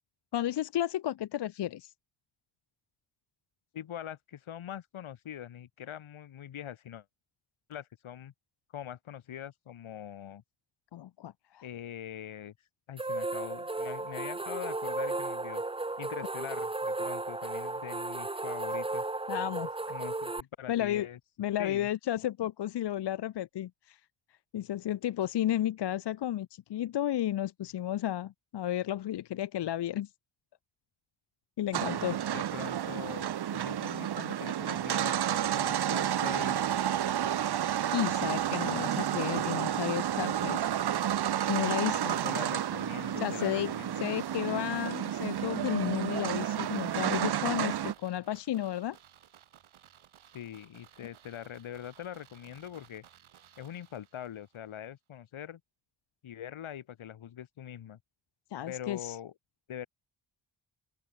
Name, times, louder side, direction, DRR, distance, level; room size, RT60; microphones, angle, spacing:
voice 1, 0.3-1.9 10.9-11.6 19.3-19.7 20.7-21.1 21.4-24.0 24.5-30.1 31.6-32.2 37.9-40.7 41.5-42.2 43.2-43.7 44.0-49.0 58.5-59.2, left 12 dB, 60° left, 0.7 m, -32 dB
voice 2, 3.7-7.1 7.7-8.3 8.7-10.4 11.6-12.5 12.9-15.6 16.0-19.0 19.9-21.2 21.6-21.9 32.3-36.6 42.2-44.1 44.4-44.8 50.3-53.1 53.6-55.6 56.2-58.0 58.7-59.3 59.7-59.9, left 10 dB, 80° left, 3.9 m, -43 dB
sound 1, 13.0-20.4, right 2 dB, 10° right, 0.9 m, -34 dB
sound 2, 31.7-47.9, right 10 dB, 55° right, 0.9 m, -31 dB
sound 3, 43.6-54.6 54.9-55.0, right 10 dB, 80° right, 5.4 m, -59 dB
open air
wide cardioid pair, 120°, 47 cm